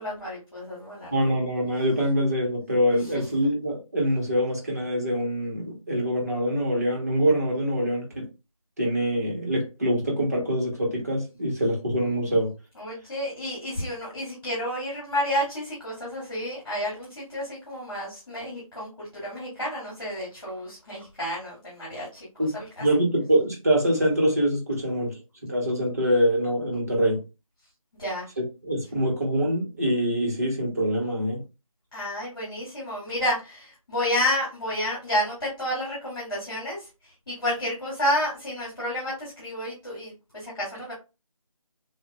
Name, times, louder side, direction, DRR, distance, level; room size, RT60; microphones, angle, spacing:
voice 1, 0.0-1.1 12.8-22.3 22.5-22.8 28.0-28.3 31.9-36.9 37.3-40.9, left 1 dB, 40° left, -7 dB, 2.4 m, -30 dB
voice 2, 1.1-8.2 8.8-12.5 22.4-22.5 22.8-27.2 28.4-31.4, equal, 25° right, -1 dB, 1.2 m, -24 dB
7.0 x 2.4 x 2.3 m, 0.28 s
figure-of-eight pair, 175°, 18 cm